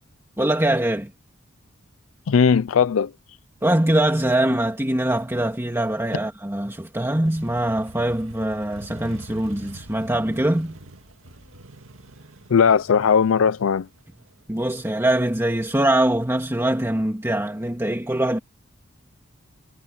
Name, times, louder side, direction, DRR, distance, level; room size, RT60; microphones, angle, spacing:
voice 1, 0.4-1.1 3.6-10.8 14.5-18.4, right 1 dB, 15° right, 2.1 m, -23 dB
voice 2, 2.3-3.1 12.5-13.9, left 6 dB, 85° left, 0.4 m, -18 dB
Motorcycle, 7.2-14.9, right 1 dB, 90° right, 2.1 m, -45 dB
head